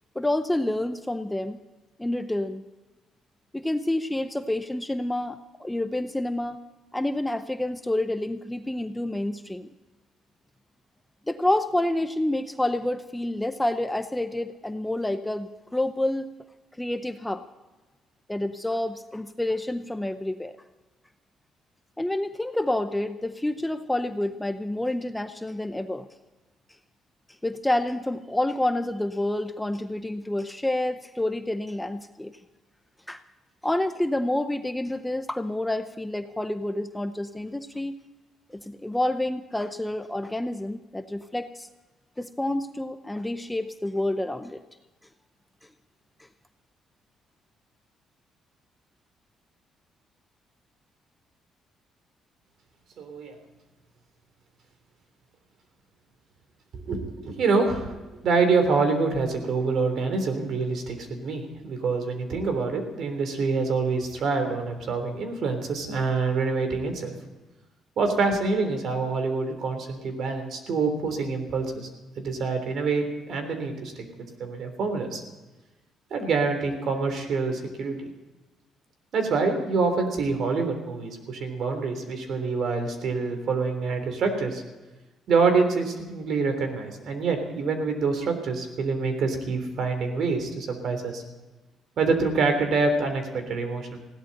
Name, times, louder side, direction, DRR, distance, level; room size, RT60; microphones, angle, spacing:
voice 1, 0.2-1.6 2.0-2.6 3.5-6.6 6.9-9.7 11.3-16.3 16.8-17.4 18.3-20.5 22.0-26.1 27.4-32.3 33.1-33.2 33.6-38.0 38.5-41.7 42.2-44.6, left 1 dB, 5° left, 9 dB, 0.6 m, -28 dB
voice 2, 53.0-53.4 56.7-58.0 58.2-67.1 68.0-71.9 72.2-74.1 74.4-75.2 76.1-78.1 79.1-84.6 85.3-91.2 92.0-94.0, right 4 dB, 55° right, 6 dB, 3.5 m, -26 dB
20.5 x 16.5 x 4.2 m, 1.2 s
cardioid pair, 150°, 0 cm